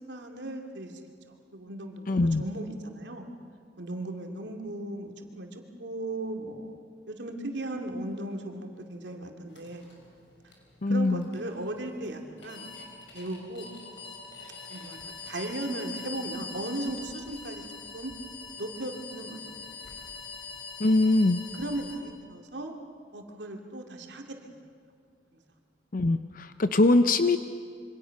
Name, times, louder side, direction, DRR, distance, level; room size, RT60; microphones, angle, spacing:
voice 1, 0.1-0.9 1.3-3.3 3.8-6.7 7.1-9.9 10.9-12.7 13.1-13.7 14.7-15.0 15.3-17.6 17.9-18.1 18.6-20.0 21.5-22.7 23.1-24.5 25.3-25.4, right 1 dB, 90° right, 3 dB, 2.5 m, -37 dB
voice 2, 2.1-2.4 10.8-11.3 20.8-21.4 25.9-27.4, left 2 dB, 50° left, 10 dB, 0.7 m, -22 dB
sound 1, 9.5-22.0, left 4 dB, 85° left, 5.2 m, -44 dB
27.0 x 25.0 x 5.9 m, 2.1 s
head